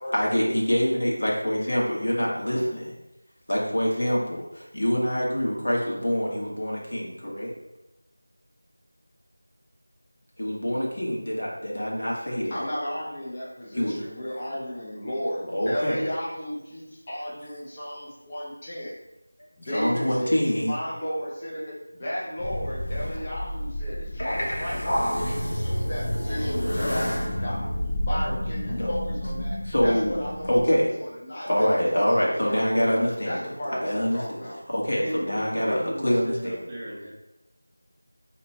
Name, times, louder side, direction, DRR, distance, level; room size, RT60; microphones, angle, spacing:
voice 1, 0.1-2.9 3.5-7.5 10.4-12.6 13.7-14.0 15.5-16.1 19.4-20.7 28.8-28.9 29.6-30.2 30.5-30.9 31.5-33.4 33.8-34.2 34.7-36.6, equal, 70° left, -4 dB, 1.4 m, -25 dB
voice 2, 12.5-19.0 19.6-27.7 28.1-32.8 33.2-34.6, equal, 20° left, -8 dB, 1.0 m, -34 dB
sound 1, 22.4-30.6, equal, 45° left, 0.9 m, -29 dB
voice 3, 34.9-37.1, equal, 15° right, -7 dB, 0.6 m, -35 dB
3.1 x 2.9 x 4.3 m, 0.93 s
figure-of-eight pair, 175°, 0 cm